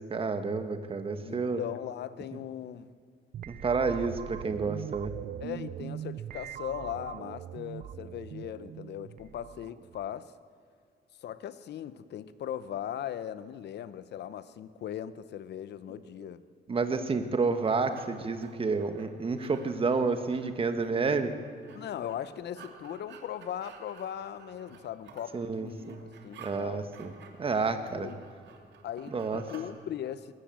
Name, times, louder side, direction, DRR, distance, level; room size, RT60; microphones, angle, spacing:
voice 1, 0.1-1.6 3.5-5.1 16.7-21.3 25.3-26.0 26.4-27.1 27.4-28.1 29.1-29.4, right 4 dB, 30° right, 8 dB, 1.5 m, -30 dB
voice 2, 1.2-2.9 3.9-4.0 5.4-10.3 11.2-16.4 21.8-26.9 27.7-28.1 28.8-30.3, left 10 dB, 65° left, 14 dB, 0.9 m, -39 dB
sound 1, 3.3-10.2, right 11 dB, 50° right, 0.4 m, -41 dB
sound 2, 17.0-29.7, right 6 dB, 70° right, 2.7 m, -53 dB
21.0 x 18.5 x 7.6 m, 2.2 s
cardioid pair, 130°, 19 cm